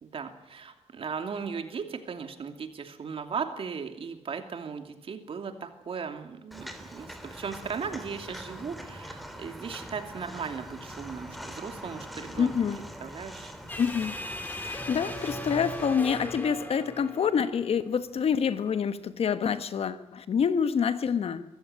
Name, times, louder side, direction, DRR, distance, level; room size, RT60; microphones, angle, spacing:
voice 1, 0.0-12.5 13.0-13.5, right 6 dB, 55° right, 6 dB, 2.8 m, -37 dB
Walk footsteps, 6.5-15.9, equal, ahead, 3.0 m, -43 dB
voice 2, 12.4-12.8 13.8-14.1 14.6-21.4, left 7 dB, 60° left, 12 dB, 1.3 m, -27 dB
sound 1, 13.7-18.1, left 1 dB, 15° left, 3.2 m, -38 dB
23.5 x 14.5 x 9.7 m, 0.88 s
cardioid pair, 115°, 11 cm